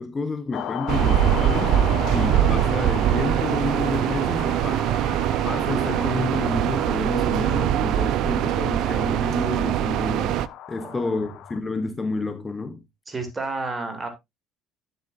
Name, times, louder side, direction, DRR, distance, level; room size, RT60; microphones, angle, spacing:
voice 1, 0.0-1.8 2.1-4.9 5.4-10.4 10.7-12.8, left 3 dB, 20° left, 1.0 m, -29 dB
sound 1, 0.5-11.6, left 11 dB, 60° left, 0.9 m, -36 dB
sound 2, 0.9-10.5, right 12 dB, 65° right, 0.4 m, -22 dB
voice 2, 10.8-11.3 13.1-14.1, right 3 dB, 20° right, 2.6 m, -31 dB
10.5 x 7.6 x 2.6 m
cardioid pair, 115°, 0 cm